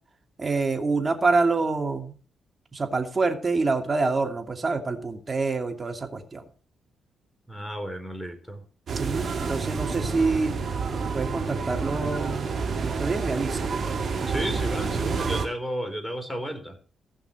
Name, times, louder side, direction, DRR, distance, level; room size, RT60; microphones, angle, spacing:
voice 1, 0.4-2.1 2.7-6.4 8.9-10.6 11.1-12.5 12.8-13.7, right 3 dB, 35° right, 4 dB, 2.6 m, -26 dB
voice 2, 7.5-8.6 14.3-16.8, equal, 5° left, 7 dB, 4.1 m, -33 dB
sound 1, 8.9-15.5, right 5 dB, 55° right, 2.5 m, -29 dB
15.5 x 5.9 x 6.5 m, 0.40 s
hypercardioid pair, 40°, 0 cm